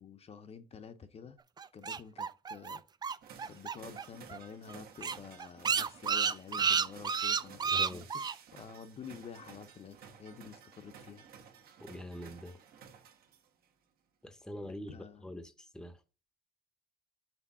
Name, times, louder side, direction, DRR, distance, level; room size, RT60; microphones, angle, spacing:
voice 1, 0.0-1.4 1.7-2.8 3.5-11.3 14.6-15.3, left 6 dB, 35° left, 0.7 m, -49 dB
sound 1, 1.6-4.0 4.3-4.4 4.7-4.8 5.0-8.3, right 6 dB, 25° right, 0.4 m, -31 dB
sound 2, 3.2-13.6, right 7 dB, 60° right, 1.3 m, -54 dB
voice 2, 7.6-8.1 11.8-12.6 14.2-16.0, left 1 dB, 5° left, 0.8 m, -44 dB
6.1 x 3.7 x 5.5 m
cardioid pair, 110°, 17 cm